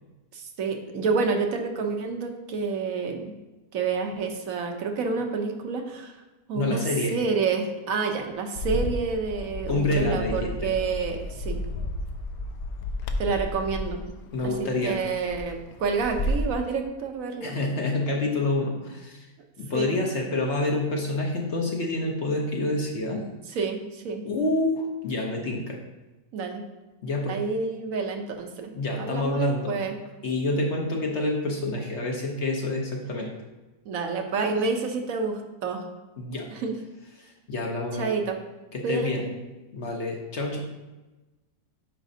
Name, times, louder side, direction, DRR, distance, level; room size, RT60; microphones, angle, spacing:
voice 1, 0.3-3.3 3.7-6.1 6.5-11.6 13.2-14.0 14.4-14.5 14.8-17.6 19.7-19.9 23.5-24.2 26.3-26.6 27.3-30.0 33.9-35.8 36.5-36.7 38.0-38.4 38.8-39.4, right 4 dB, 65° right, 4 dB, 1.1 m, -28 dB
voice 2, 6.5-7.2 9.7-10.7 14.3-15.0 17.4-19.3 19.6-23.2 24.2-25.8 27.0-27.4 28.7-29.8 30.2-33.3 36.2-36.5 37.2-38.1 38.7-39.2 39.7-40.6, left 2 dB, 55° left, 0 dB, 1.0 m, -27 dB
Bird, 8.6-16.5, left 1 dB, 75° left, 1.0 m, -32 dB
9.0 x 5.2 x 2.7 m, 1.1 s
omnidirectional pair, 1.7 m